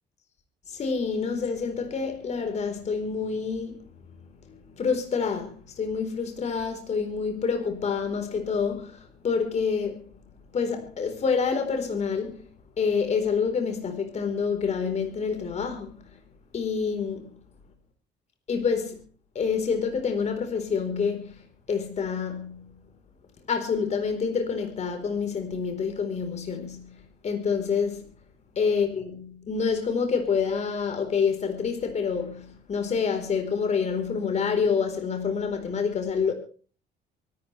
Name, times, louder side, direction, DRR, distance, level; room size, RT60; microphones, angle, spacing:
voice 1, 0.7-3.9 4.2-10.2 10.5-12.5 12.8-16.2 16.5-17.4 18.5-19.0 19.3-22.8 23.5-28.1 28.6-36.3, left 5 dB, 40° left, 4.2 m, -27 dB
24.5 x 13.5 x 3.4 m
cardioid pair, 110°, 17 cm